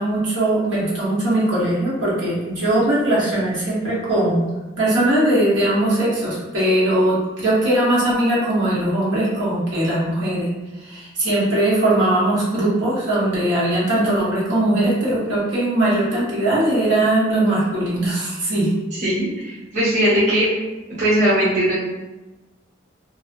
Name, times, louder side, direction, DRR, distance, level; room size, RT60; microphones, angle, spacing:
voice 1, 0.0-10.5 10.8-18.7, right 1 dB, 80° right, -8 dB, 1.1 m, -20 dB
voice 2, 18.9-20.5 21.0-21.7, equal, 40° right, -9 dB, 0.8 m, -19 dB
2.6 x 2.2 x 2.5 m, 1.1 s
head